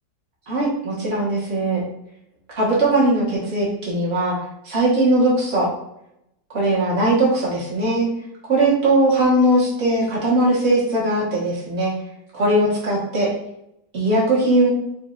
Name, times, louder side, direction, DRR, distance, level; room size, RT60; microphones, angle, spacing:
voice 1, 0.5-1.8 2.6-4.4 4.6-5.7 6.5-8.1 8.5-11.9 12.3-13.3 13.9-14.7, right 1 dB, 40° right, -6 dB, 1.8 m, -19 dB
7.0 x 2.8 x 2.6 m, 0.80 s
omnidirectional pair, 1.8 m